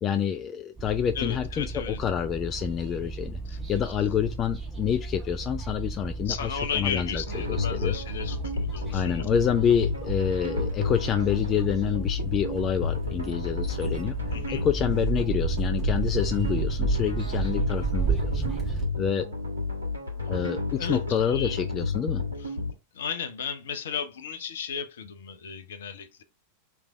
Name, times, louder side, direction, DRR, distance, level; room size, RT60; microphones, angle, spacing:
voice 1, 0.0-7.2 7.5-7.9 8.9-14.1 14.5-19.3 20.3-22.2, left 8 dB, 30° left, 0.3 m, -27 dB
sound 1, 0.8-18.8, right 5 dB, 15° right, 1.4 m, -33 dB
voice 2, 1.1-2.0 3.5-3.6 6.3-9.3 14.3-14.6 20.8-21.6 22.4-22.5 22.9-26.2, left 6 dB, 60° left, 0.7 m, -34 dB
sound 2, 7.3-22.7, left 4 dB, 80° right, 1.5 m, -31 dB
3.5 x 3.3 x 4.6 m
figure-of-eight pair, 90°, 0 cm